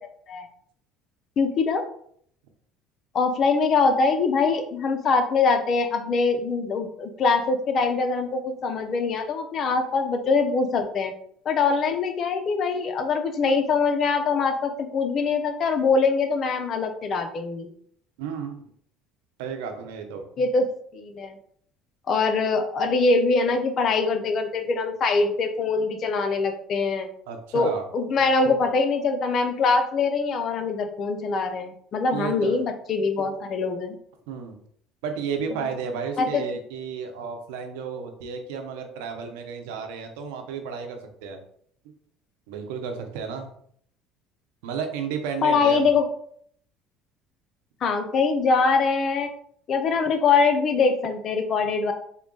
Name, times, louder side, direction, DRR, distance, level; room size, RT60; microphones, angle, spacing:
voice 1, 1.4-1.8 3.1-11.1 11.4-17.7 20.4-21.4 22.1-27.1 27.5-33.9 35.5-35.7 36.2-36.4 45.4-46.1 47.8-49.3 49.7-51.9, left 4 dB, 45° left, 7 dB, 0.6 m, -23 dB
voice 2, 18.2-18.7 19.4-20.2 27.3-27.8 32.1-32.7 34.3-34.6 35.0-41.4 42.5-43.5 44.6-45.9, right 6 dB, 90° right, 5 dB, 0.7 m, -32 dB
3.8 x 2.3 x 3.8 m, 0.64 s
supercardioid pair, 110°, 0 cm